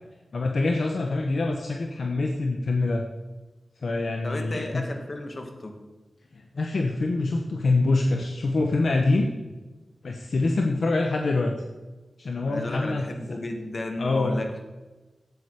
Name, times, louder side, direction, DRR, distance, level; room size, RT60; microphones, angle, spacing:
voice 1, 0.3-3.1 3.8-4.9 6.3-9.3 10.0-11.5 12.2-13.1 14.0-14.4, left 2 dB, 70° left, 3 dB, 1.0 m, -25 dB
voice 2, 4.2-5.8 12.5-14.5, left 2 dB, 50° left, 4 dB, 1.9 m, -33 dB
13.0 x 8.5 x 4.8 m, 1.2 s
cardioid pair, 50°, 0 cm